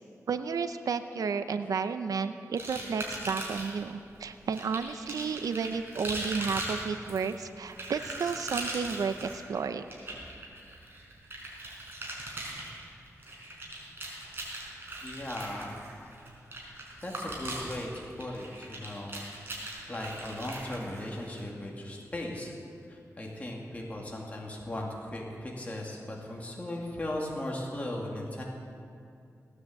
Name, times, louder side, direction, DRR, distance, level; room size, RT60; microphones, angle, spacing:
voice 1, 0.3-9.8, right 5 dB, 90° right, 10 dB, 0.6 m, -32 dB
sound 1, 2.6-3.8 4.5-21.4, right 1 dB, 40° right, 4.7 m, -39 dB
voice 2, 15.0-15.7 17.0-19.2 19.9-22.5 22.9-28.4, left 1 dB, 25° left, -2 dB, 2.2 m, -37 dB
17.5 x 9.8 x 7.7 m, 2.5 s
wide cardioid pair, 105°, 6 cm